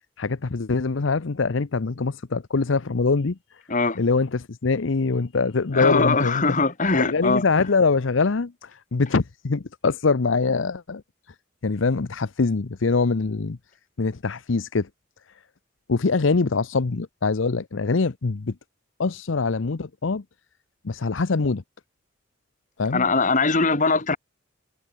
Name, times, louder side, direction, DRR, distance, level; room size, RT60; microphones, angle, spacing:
voice 1, 0.2-3.4 3.9-6.6 6.9-11.0 11.6-13.6 14.0-14.9 15.9-18.5 19.0-20.2 20.8-21.6 22.8-23.1, left 4 dB, 75° left, 0.7 m, -23 dB
voice 2, 5.7-7.4 22.9-24.2, left 3 dB, 40° left, 2.3 m, -21 dB
head